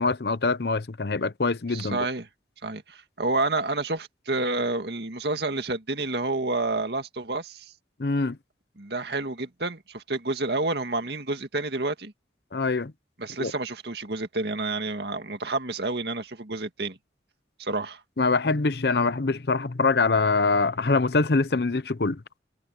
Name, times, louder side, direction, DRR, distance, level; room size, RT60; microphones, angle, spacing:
voice 1, 0.0-2.1 8.0-8.4 12.5-12.9 13.4-13.5 18.2-22.2, left 3 dB, 65° left, 0.8 m, -24 dB
voice 2, 1.7-2.3 2.6-7.7 8.8-12.1 13.2-17.0 17.6-18.0, right 2 dB, 65° right, 2.1 m, -29 dB
head